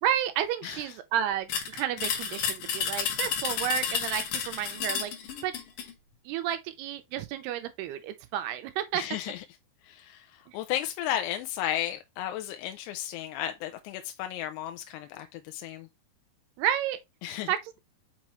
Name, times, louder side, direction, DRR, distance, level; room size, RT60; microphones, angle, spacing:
voice 1, 0.0-5.1 5.4-5.5 6.3-9.0 10.5-10.6 16.6-17.0 17.5-17.8, right 10 dB, 85° right, 2.7 m, -31 dB
voice 2, 0.6-1.0 8.9-9.4 9.8-15.9 17.2-17.5, left 12 dB, 85° left, 2.7 m, -34 dB
sound 1, 1.5-5.9, left 7 dB, 65° left, 2.5 m, -31 dB
6.1 x 5.5 x 3.0 m
omnidirectional pair, 4.8 m